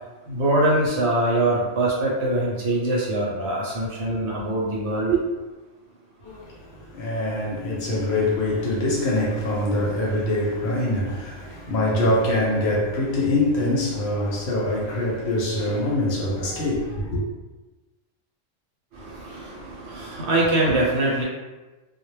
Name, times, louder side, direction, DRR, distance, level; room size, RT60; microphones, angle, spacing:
voice 1, 0.3-5.2 19.0-21.2, right 2 dB, 65° right, 0.9 m, -23 dB
voice 2, 6.2-17.2, left 1 dB, 65° left, 0.8 m, -24 dB
2.2 x 2.0 x 3.1 m
omnidirectional pair, 1.3 m